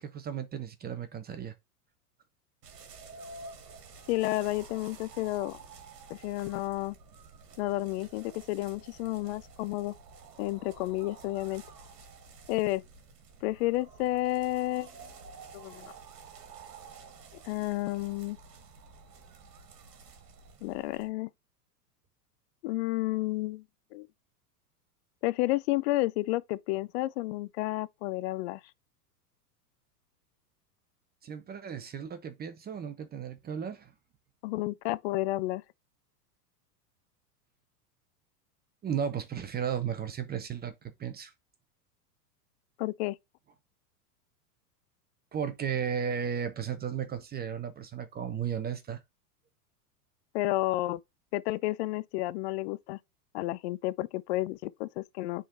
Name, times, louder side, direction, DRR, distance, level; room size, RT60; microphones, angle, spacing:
voice 1, 0.0-1.5 31.2-33.9 38.8-40.7 41.0-41.3 45.3-49.0, right 7 dB, 20° right, 0.8 m, -34 dB
sound 1, 2.6-21.1, right 4 dB, 75° right, 1.7 m, -51 dB
voice 2, 4.1-5.6 6.1-7.0 7.6-9.9 10.4-11.6 12.5-12.8 13.4-14.9 15.5-15.9 17.4-18.4 20.6-21.3 22.6-23.6 23.9-24.1 25.2-28.6 34.4-35.6 42.8-43.2 50.3-51.0 51.3-53.0 53.3-55.5, left 18 dB, 45° left, 0.5 m, -31 dB
9.7 x 3.8 x 2.6 m
hypercardioid pair, 105°, 48 cm